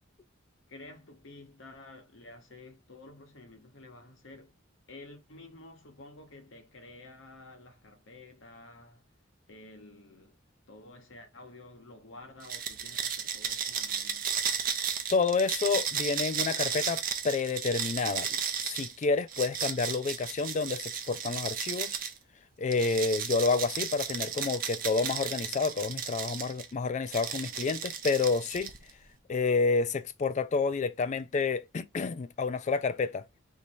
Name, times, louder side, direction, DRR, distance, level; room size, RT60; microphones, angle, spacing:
voice 1, 0.7-4.5 4.9-9.0 9.5-10.4 10.7-14.3, left 2 dB, 65° left, 1.0 m, -51 dB
sound 1, 12.4-22.2 22.7-26.7 27.1-28.9, right 7 dB, 45° right, 0.6 m, -34 dB
voice 2, 15.1-18.3 18.6-22.0 22.6-28.7 29.3-33.2, left 4 dB, 35° left, 0.3 m, -29 dB
3.1 x 2.7 x 4.4 m
head